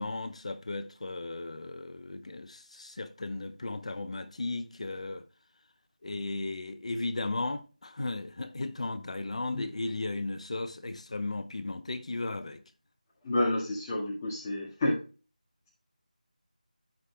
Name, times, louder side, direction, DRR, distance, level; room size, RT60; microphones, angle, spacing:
voice 1, 0.0-5.2 6.0-12.6, left 2 dB, 50° left, 0.8 m, -35 dB
voice 2, 13.2-15.0, left 1 dB, 20° left, 1.6 m, -29 dB
14.5 x 5.1 x 2.2 m
figure-of-eight pair, 170°, 5 cm